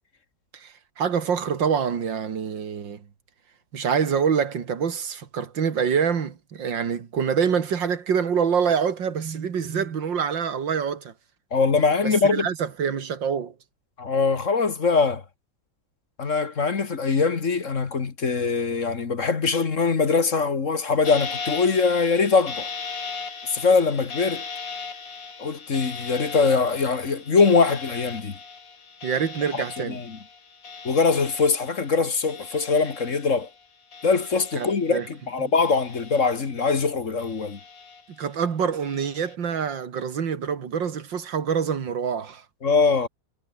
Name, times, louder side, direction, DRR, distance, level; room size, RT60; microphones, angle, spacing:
voice 1, 0.5-3.0 3.7-11.1 12.0-13.5 29.0-30.0 34.6-35.1 35.4-35.5 38.2-42.4, right 7 dB, 85° right, 2.6 m, -26 dB
voice 2, 11.5-12.5 14.0-15.2 16.2-22.7 23.4-24.4 25.4-28.3 29.5-30.2 30.8-33.5 34.0-37.6 42.6-43.1, left 4 dB, 45° left, 2.0 m, -22 dB
sound 1, 21.0-33.6 33.9-35.1 35.5-36.8 37.2-38.2 38.8-39.3, left 5 dB, 80° left, 3.8 m, -38 dB
omnidirectional pair, 2.0 m